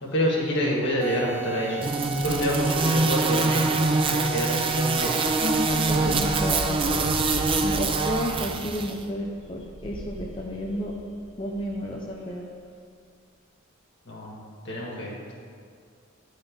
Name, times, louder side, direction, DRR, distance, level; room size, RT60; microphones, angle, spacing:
voice 1, 0.0-1.8 2.2-3.8 4.1-5.3 5.8-6.2 14.1-15.3, equal, 60° left, -3 dB, 1.8 m, -28 dB
sound 1, 1.0-6.9, right 9 dB, 5° right, 0.8 m, -36 dB
sound 2, 1.8-8.9, right 3 dB, 25° right, 0.4 m, -24 dB
sound 3, 5.0-12.2, equal, 65° right, 1.1 m, -39 dB
voice 2, 5.4-6.8 7.6-11.0 11.4-12.5, equal, 25° left, -2 dB, 0.5 m, -32 dB
10.5 x 4.0 x 5.2 m, 2.2 s
head